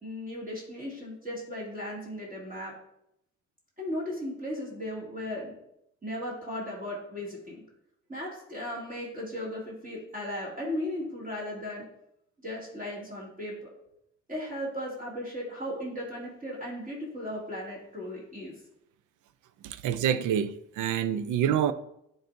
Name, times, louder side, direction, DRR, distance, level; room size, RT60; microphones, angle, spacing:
voice 1, 0.0-2.7 3.8-5.6 6.0-7.6 8.1-11.8 12.4-13.6 14.3-18.6, left 1 dB, 25° right, 2.4 m, -36 dB
voice 2, 19.6-21.7, right 9 dB, 80° right, 0.5 m, -27 dB
10.5 x 3.9 x 2.6 m
cardioid pair, 90°, 30 cm